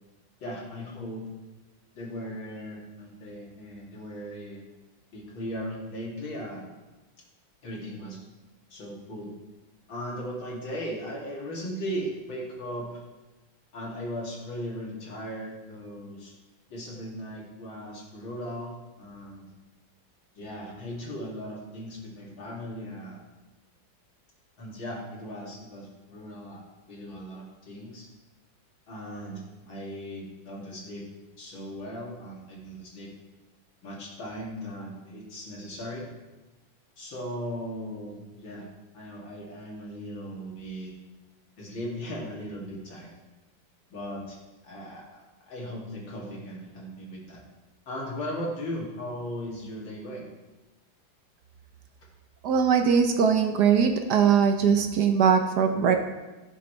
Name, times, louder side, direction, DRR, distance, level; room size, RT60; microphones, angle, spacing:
voice 1, 0.4-1.3 2.0-4.6 5.1-6.6 7.6-8.2 8.7-9.3 9.9-13.0 13.7-16.3 16.7-19.5 20.3-23.2 24.6-28.1 28.9-31.1 31.4-33.1 33.8-36.0 37.0-38.6 38.9-40.9 41.6-43.1 43.9-44.4 44.6-45.0 45.5-47.4 47.9-50.3, equal, 80° left, -4 dB, 3.2 m, -37 dB
voice 2, 52.4-56.0, right 7 dB, 65° right, 5 dB, 1.3 m, -21 dB
16.5 x 7.2 x 3.2 m, 1.1 s
omnidirectional pair, 2.1 m